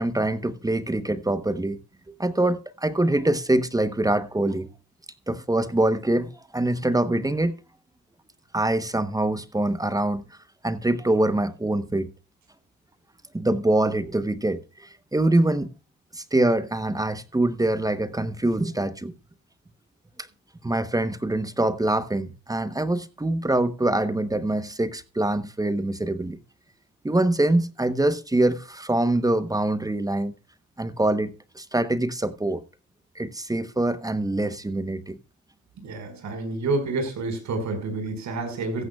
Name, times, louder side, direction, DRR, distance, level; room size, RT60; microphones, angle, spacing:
voice 1, 0.0-1.8 2.1-4.7 5.3-7.5 8.5-10.2 10.6-12.1 13.3-15.7 16.1-19.1 20.6-26.4 27.0-30.3 30.8-32.6 33.1-35.2, right 1 dB, 10° right, 1.0 m, -24 dB
voice 2, 35.8-38.9, right 3 dB, 65° right, 5.4 m, -29 dB
15.0 x 14.5 x 2.4 m
cardioid pair, 90°, 30 cm